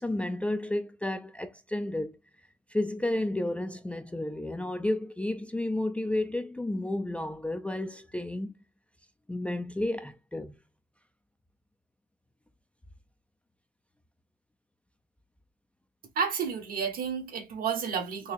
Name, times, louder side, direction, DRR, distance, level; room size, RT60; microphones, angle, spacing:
voice 1, 0.0-2.2 2.7-8.5 9.3-10.6, left 1 dB, 5° left, 0.4 m, -32 dB
voice 2, 16.1-18.3, right 6 dB, 60° right, 1.3 m, -31 dB
4.2 x 2.8 x 2.6 m
cardioid pair, 110°, 17 cm